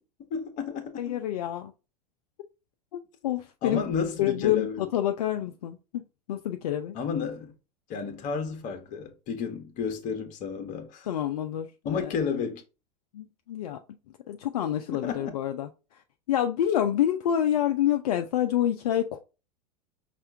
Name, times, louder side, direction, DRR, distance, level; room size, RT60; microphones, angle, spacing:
voice 1, 0.3-1.2 3.6-4.8 6.9-7.5 7.9-11.1 11.8-12.6 14.9-15.3, left 6 dB, 40° left, 1.0 m, -32 dB
voice 2, 1.0-1.7 3.2-3.8 4.2-7.0 11.1-12.1 13.1-13.8 14.3-16.0 16.3-19.2, left 11 dB, 65° left, 0.5 m, -27 dB
5.5 x 2.5 x 3.3 m
figure-of-eight pair, 85°, 21 cm